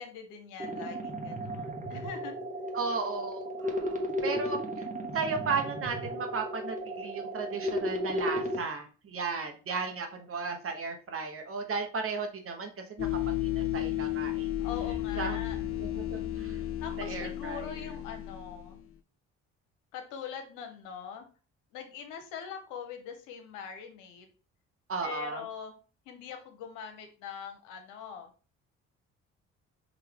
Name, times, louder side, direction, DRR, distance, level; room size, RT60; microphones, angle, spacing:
voice 1, 0.0-2.4 14.6-15.6 16.8-18.8 19.9-21.3 21.7-24.3 25.0-25.8 26.1-28.3, left 7 dB, 90° left, 5 dB, 0.9 m, -42 dB
sound 1, 0.6-8.6, equal, 25° right, 1.1 m, -34 dB
voice 2, 2.7-4.6 5.1-12.7 13.0-14.5 15.2-15.4 15.8-16.6 17.0-17.6 24.9-25.4, right 4 dB, 45° right, 5 dB, 1.1 m, -35 dB
sound 2, 13.0-18.8, left 14 dB, 45° left, 0.6 m, -33 dB
5.0 x 2.6 x 3.4 m, 0.36 s
supercardioid pair, 65°, 30 cm